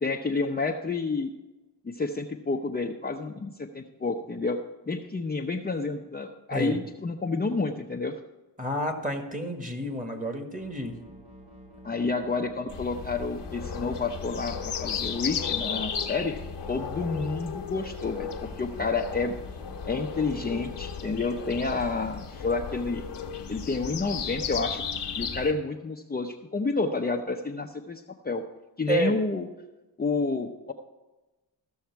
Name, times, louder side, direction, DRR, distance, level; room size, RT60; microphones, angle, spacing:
voice 1, 0.0-1.3 1.8-8.1 11.8-16.4 16.7-19.4 19.9-23.1 23.5-24.8 25.2-28.4 28.8-29.5 30.0-30.7, left 3 dB, 25° left, 2 dB, 0.7 m, -29 dB
voice 2, 8.6-10.9 28.9-29.1, right 1 dB, 20° right, 4 dB, 1.7 m, -30 dB
sound 1, 10.6-22.1, equal, 60° right, 4.4 m, -49 dB
sound 2, 12.7-25.5, left 7 dB, 75° left, 1.1 m, -35 dB
14.5 x 6.4 x 4.6 m, 1.1 s
cardioid pair, 75°, 41 cm